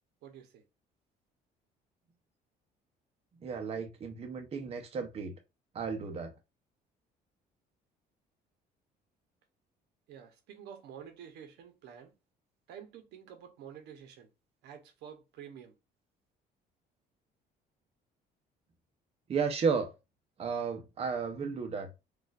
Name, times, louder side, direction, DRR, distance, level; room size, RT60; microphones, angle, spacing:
voice 1, 0.2-0.6 10.1-12.1 12.7-14.3 14.6-15.7, right 8 dB, 80° right, 0.9 m, -49 dB
voice 2, 3.4-5.3 5.7-6.3 19.3-19.9 20.4-21.9, right 5 dB, 35° right, 0.7 m, -33 dB
4.1 x 2.5 x 2.4 m
cardioid pair, 110°, 17 cm